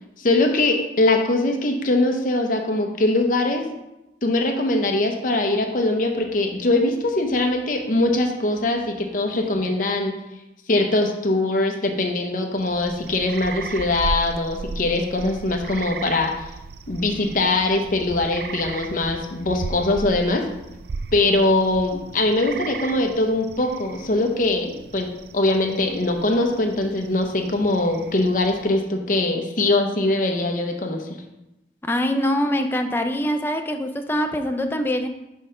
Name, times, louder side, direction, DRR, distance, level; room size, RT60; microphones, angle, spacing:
voice 1, 0.2-3.7 4.2-10.1 10.7-16.4 16.9-20.5 21.1-31.2, left 2 dB, 50° left, 3 dB, 0.7 m, -22 dB
sound 1, 12.6-28.8, right 4 dB, 60° right, 0.3 m, -36 dB
voice 2, 31.8-35.1, equal, 10° left, 5 dB, 0.4 m, -23 dB
6.1 x 3.7 x 5.4 m, 0.93 s
head